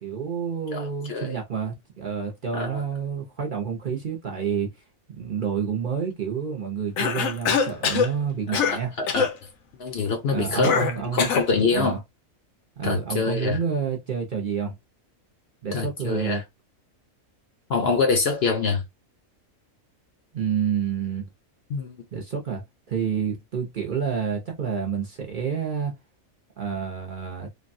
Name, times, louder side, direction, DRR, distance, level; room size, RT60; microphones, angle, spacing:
voice 1, 0.0-4.7 5.1-8.9 10.3-11.3 11.7-12.0 12.8-14.7 15.6-16.4 20.3-21.3 22.1-25.9 26.6-27.5, right 7 dB, 45° right, 0.7 m, -29 dB
voice 2, 0.7-1.3 2.5-2.8 8.5-9.3 9.8-12.0 12.8-13.6 15.7-16.4 17.7-18.8 21.7-22.0, left 4 dB, 60° left, 0.8 m, -25 dB
Cough, 7.0-8.1 8.5-8.8 9.1-9.3 10.6-11.5, left 6 dB, 80° left, 1.1 m, -23 dB
3.2 x 2.2 x 2.5 m
omnidirectional pair, 1.4 m